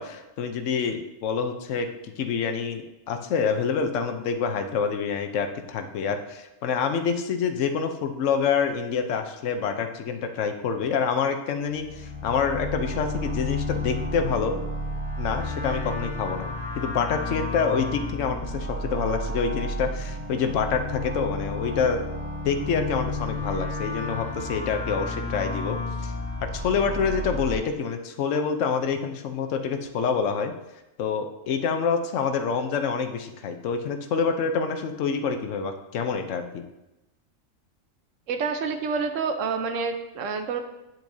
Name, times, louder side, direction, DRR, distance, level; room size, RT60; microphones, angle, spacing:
voice 1, 0.0-1.9 2.2-14.6 15.2-22.0 22.4-25.8 26.0-26.1 26.4-30.5 31.0-36.6, left 6 dB, 70° left, 6 dB, 1.1 m, -27 dB
sound 1, 11.7-27.5, left 1 dB, 30° left, 1.9 m, -32 dB
voice 2, 38.3-40.6, right 5 dB, 70° right, 6 dB, 1.1 m, -28 dB
9.3 x 7.5 x 2.7 m, 0.97 s
omnidirectional pair, 1.4 m